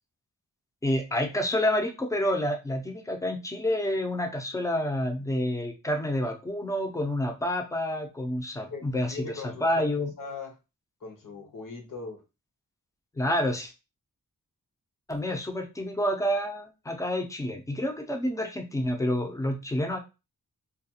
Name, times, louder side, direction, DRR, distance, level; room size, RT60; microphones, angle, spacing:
voice 1, 0.8-10.1 13.2-13.7 15.1-20.0, left 1 dB, 10° left, 4 dB, 0.4 m, -28 dB
voice 2, 8.7-9.9 10.2-10.5 11.0-12.2, left 4 dB, 70° left, 2 dB, 0.9 m, -39 dB
2.4 x 2.2 x 2.7 m, 0.28 s
wide cardioid pair, 125°, 34 cm